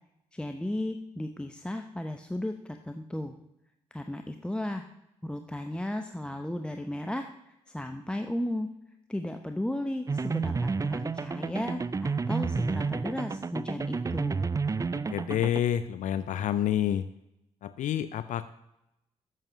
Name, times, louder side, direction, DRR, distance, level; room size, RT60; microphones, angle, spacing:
voice 1, 0.3-3.3 3.9-4.8 5.2-7.3 7.7-8.7 9.1-14.5, left 1 dB, 5° left, 6 dB, 0.7 m, -34 dB
sound 1, 10.1-15.6, right 4 dB, 25° right, 0.4 m, -30 dB
voice 2, 15.1-17.1 17.6-18.5, left 10 dB, 70° left, 13 dB, 0.4 m, -28 dB
7.6 x 7.4 x 6.2 m, 0.88 s
supercardioid pair, 55°, 13 cm